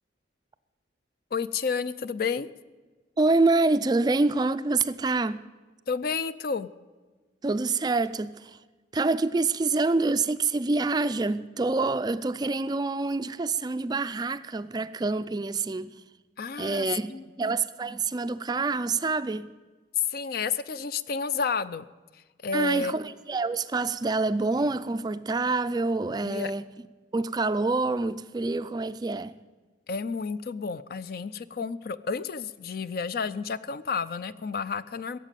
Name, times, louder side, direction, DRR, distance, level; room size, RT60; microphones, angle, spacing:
voice 1, 1.3-2.5 5.9-6.7 16.4-17.2 20.0-21.9 22.1-23.0 26.2-26.5 29.9-35.2, left 5 dB, 50° left, 0.4 m, -31 dB
voice 2, 3.2-5.4 7.4-8.6 8.9-15.9 16.6-17.1 17.4-19.5 22.5-26.7 27.1-29.3, right 3 dB, 20° right, 0.3 m, -26 dB
16.5 x 7.4 x 9.0 m
head